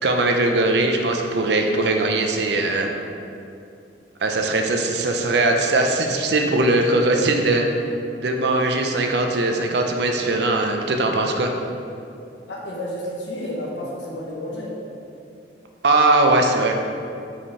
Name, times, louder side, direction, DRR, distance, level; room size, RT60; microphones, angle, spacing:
voice 1, 0.0-2.9 4.2-7.7 8.1-11.5 15.8-16.7, right 2 dB, 65° right, 3 dB, 0.6 m, -20 dB
voice 2, 12.5-14.8, left 1 dB, 85° left, -4 dB, 1.1 m, -31 dB
5.5 x 5.0 x 4.1 m, 2.6 s
head